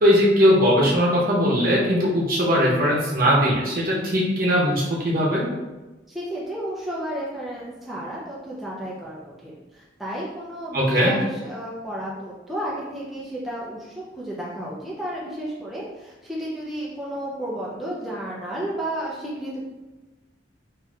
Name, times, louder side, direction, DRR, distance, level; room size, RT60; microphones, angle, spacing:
voice 1, 0.0-5.4 10.7-11.1, equal, 50° right, -4 dB, 0.8 m, -19 dB
voice 2, 6.1-19.7, right 1 dB, ahead, -7 dB, 0.4 m, -32 dB
4.0 x 2.7 x 2.4 m, 1.1 s
head